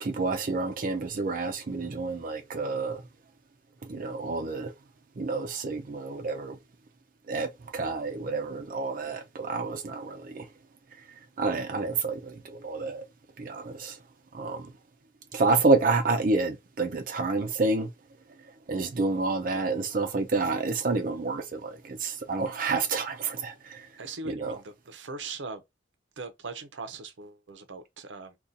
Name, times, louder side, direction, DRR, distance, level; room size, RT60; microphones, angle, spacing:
voice 1, 0.0-3.0 3.8-4.7 5.2-6.6 7.3-10.5 11.4-13.1 13.4-14.0 14.3-14.7 15.3-17.9 18.7-23.9 24.2-24.6, right 3 dB, 50° right, 0.5 m, -29 dB
voice 2, 24.0-25.6 26.2-28.4, right 4 dB, 90° right, 0.7 m, -40 dB
2.7 x 2.3 x 3.7 m
head